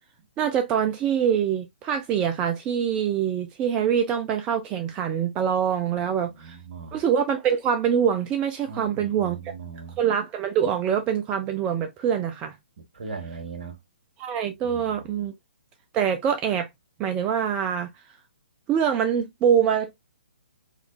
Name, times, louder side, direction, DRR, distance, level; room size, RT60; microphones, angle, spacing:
voice 1, 0.4-6.6 6.9-9.5 10.0-12.5 14.2-15.3 15.9-16.7 17.0-17.9 18.7-20.0, right 8 dB, 20° right, 0.5 m, -24 dB
voice 2, 5.8-7.0 8.7-10.0 12.8-13.8 14.6-15.2, right 5 dB, 60° right, 1.6 m, -39 dB
5.0 x 3.2 x 2.3 m
figure-of-eight pair, 125°, 6 cm